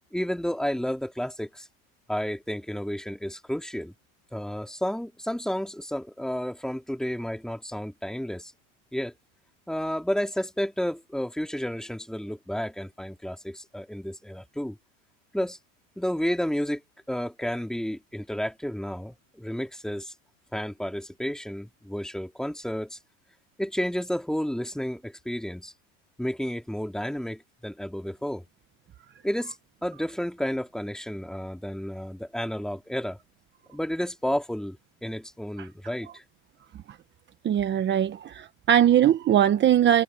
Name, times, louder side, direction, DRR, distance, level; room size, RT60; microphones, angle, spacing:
voice 1, 0.1-1.7 2.1-3.9 4.3-8.5 8.9-9.1 9.7-14.8 15.3-15.6 16.0-16.8 17.1-20.1 20.5-23.0 23.6-25.7 26.2-28.4 29.2-29.5 29.8-33.2 33.7-36.2, equal, ahead, 2.7 m, -31 dB
voice 2, 37.4-40.0, right 10 dB, 25° right, 1.2 m, -21 dB
supercardioid pair, 130°, 40 cm